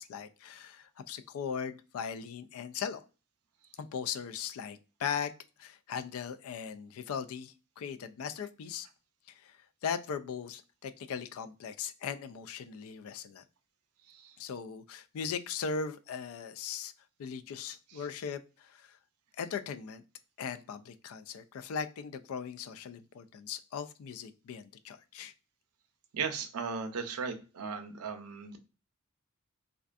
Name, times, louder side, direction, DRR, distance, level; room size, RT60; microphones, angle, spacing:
voice 1, 0.0-3.0 3.8-5.3 5.6-8.9 9.4-9.6 9.8-13.4 14.4-16.9 17.2-19.0 19.4-20.0 20.4-25.3, left 6 dB, 70° left, 0.3 m, -39 dB
voice 2, 26.1-28.6, right 5 dB, 90° right, 0.5 m, -37 dB
2.5 x 2.2 x 2.4 m
head